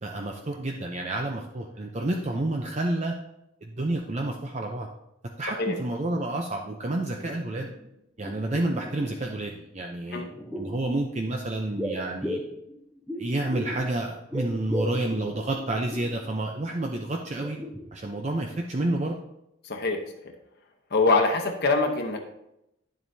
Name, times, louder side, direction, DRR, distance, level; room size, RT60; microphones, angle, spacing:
voice 1, 0.0-3.2 3.6-4.9 5.4-7.7 8.2-10.2 10.6-12.4 13.2-17.6 17.9-19.2, right 2 dB, 35° right, 2 dB, 0.6 m, -29 dB
sound 1, 6.7-6.8 7.1-7.9 8.2-9.4 10.2-10.8 11.8-13.9 14.1-16.2 16.6-16.8 17.2-18.2 18.5-18.6, equal, 5° right, 0.8 m, -36 dB
voice 2, 19.6-20.0 20.9-22.2, left 3 dB, 50° left, 2 dB, 0.9 m, -23 dB
10.5 x 7.7 x 2.7 m, 0.83 s
head